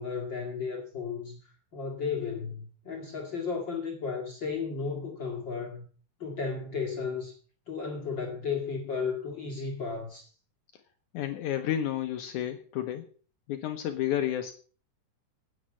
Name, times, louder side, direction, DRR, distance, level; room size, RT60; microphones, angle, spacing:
voice 1, 0.0-1.4 1.7-5.8 6.2-7.3 7.7-10.3, left 5 dB, 40° left, 0 dB, 2.5 m, -34 dB
voice 2, 11.1-13.1 13.5-14.5, left 11 dB, 75° left, 6 dB, 2.3 m, -31 dB
9.7 x 9.3 x 7.6 m, 0.41 s
omnidirectional pair, 3.7 m